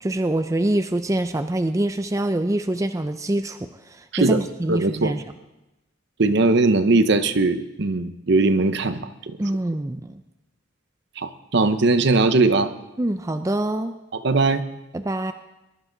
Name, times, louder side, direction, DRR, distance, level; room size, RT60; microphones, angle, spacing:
voice 1, 0.0-5.2 9.4-10.2 13.0-13.9 14.9-15.3, right 1 dB, 15° right, 8 dB, 0.4 m, -25 dB
voice 2, 4.7-5.2 6.2-9.4 11.2-12.7 14.1-14.6, right 3 dB, 55° right, 11 dB, 0.8 m, -20 dB
21.5 x 12.0 x 3.9 m, 0.97 s
head